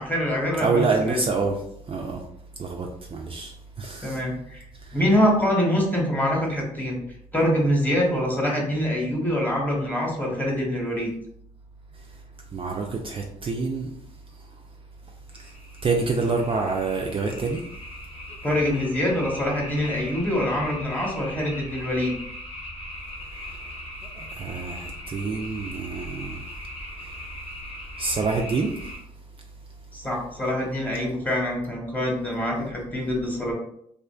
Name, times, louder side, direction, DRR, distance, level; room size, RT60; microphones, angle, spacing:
voice 1, 0.0-1.2 4.0-4.6 4.9-7.0 7.3-11.1 18.4-22.1 29.9-33.5, equal, 10° left, 1.0 m, -24 dB
voice 2, 0.6-1.6 1.9-2.2 2.6-4.2 4.9-5.0 12.5-13.9 15.4-15.5 15.8-17.6 24.2-26.4 28.0-28.7, right 4 dB, 35° right, 0.4 m, -27 dB
sound 1, 15.3-29.0, left 1 dB, 40° left, 1.0 m, -39 dB
2.4 x 2.4 x 2.3 m
supercardioid pair, 60°, 15 cm